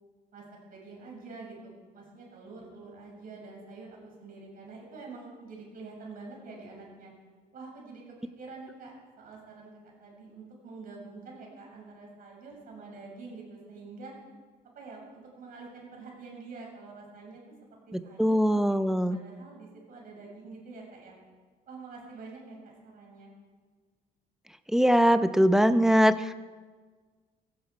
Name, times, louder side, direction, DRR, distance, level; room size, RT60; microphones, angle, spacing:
voice 1, 0.3-7.1 7.5-9.7 10.0-14.1 14.7-17.5 17.9-18.8 19.1-21.1 21.7-23.3, right 3 dB, 55° right, -1 dB, 6.6 m, -46 dB
voice 2, 17.9-19.2 24.7-26.4, equal, 5° right, 11 dB, 0.6 m, -22 dB
17.5 x 15.5 x 4.8 m, 1.5 s
cardioid pair, 110°, 17 cm